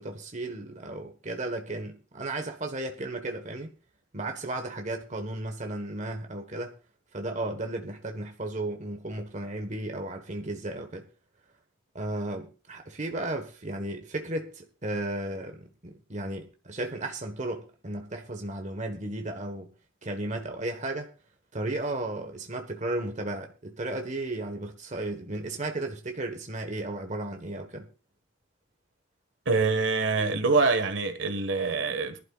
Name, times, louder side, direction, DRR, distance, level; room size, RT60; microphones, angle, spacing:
voice 1, 0.0-3.7 4.1-6.7 7.1-11.1 11.9-19.7 20.0-21.1 21.5-27.9, right 2 dB, 35° right, 1.4 m, -34 dB
voice 2, 29.4-32.2, right 4 dB, 65° right, 1.6 m, -25 dB
22.0 x 11.5 x 2.5 m
head